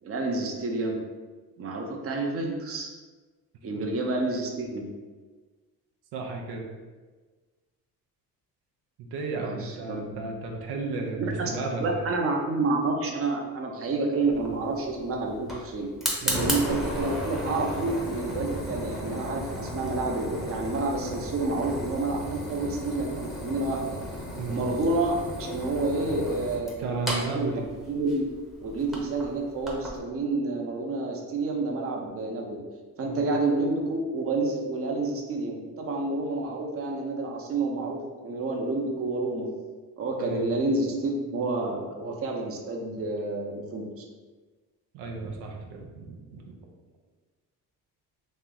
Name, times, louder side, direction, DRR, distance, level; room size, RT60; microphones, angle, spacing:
voice 1, 0.0-1.0 1.6-2.9 3.6-4.9 9.3-10.2 11.2-11.5 11.8-15.9 16.2-24.0 24.5-27.0 27.3-28.3 28.6-32.6 33.0-39.5 40.0-44.0, right 3 dB, 35° right, 1 dB, 0.6 m, -29 dB
voice 2, 6.1-6.7 9.0-12.0 16.2-16.5 24.4-24.6 26.8-27.7 33.0-33.3 40.2-40.5 44.9-46.6, right 3 dB, 90° right, 1 dB, 0.7 m, -34 dB
Fire, 14.3-30.0, equal, ahead, 0.7 m, -35 dB
3.1 x 2.9 x 3.7 m, 1.3 s
cardioid pair, 110°, 38 cm